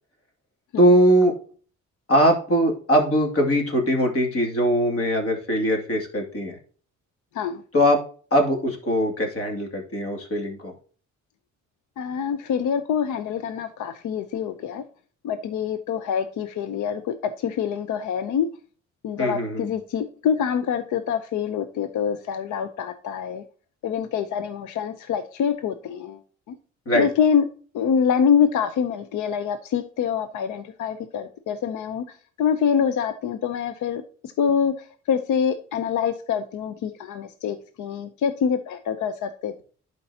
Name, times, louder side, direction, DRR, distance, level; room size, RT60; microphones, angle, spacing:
voice 1, 0.8-1.3 2.1-6.6 7.7-8.0 8.3-10.7 19.2-19.7 26.9-27.1, equal, 50° left, 2 dB, 2.6 m, -21 dB
voice 2, 12.0-14.8 15.2-18.5 19.0-23.4 23.8-26.2 26.5-26.6 26.9-27.4 27.7-32.0 32.4-34.0 34.4-34.7 35.1-39.6, left 7 dB, 75° left, 10 dB, 0.7 m, -25 dB
11.5 x 4.6 x 2.8 m, 0.42 s
cardioid pair, 90°, 30 cm